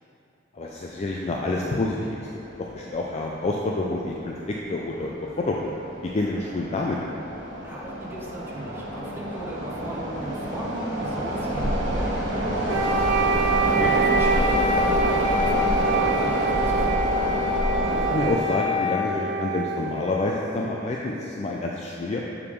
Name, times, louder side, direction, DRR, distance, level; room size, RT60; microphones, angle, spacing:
voice 1, 0.5-2.2 2.6-5.7 6.0-7.2 13.8-13.9 17.9-22.3, left 2 dB, 35° left, -2 dB, 0.4 m, -28 dB
sound 1, 1.4-1.5 1.8-1.9 2.6-2.8 3.1-3.3 3.8-4.2 4.7-18.3, right 1 dB, 65° right, 1.3 m, -27 dB
voice 2, 7.6-13.1 13.7-17.1, right 1 dB, 10° right, -5 dB, 0.8 m, -37 dB
Wind instrument woodwind instrument, 12.7-20.7, right 2 dB, 85° right, 0.5 m, -25 dB
6.5 x 4.8 x 3.6 m, 2.6 s
head